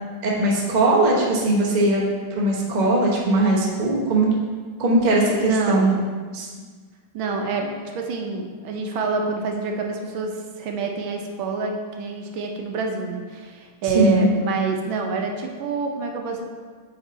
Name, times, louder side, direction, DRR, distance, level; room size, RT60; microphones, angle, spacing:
voice 1, 0.2-2.0 2.3-4.3 4.8-6.0 6.3-6.5 13.8-14.3, right 2 dB, 40° right, -3 dB, 0.6 m, -20 dB
voice 2, 5.4-5.9 7.1-16.5, right 4 dB, 75° right, 2 dB, 1.4 m, -27 dB
8.0 x 3.4 x 4.0 m, 1.5 s
omnidirectional pair, 2.3 m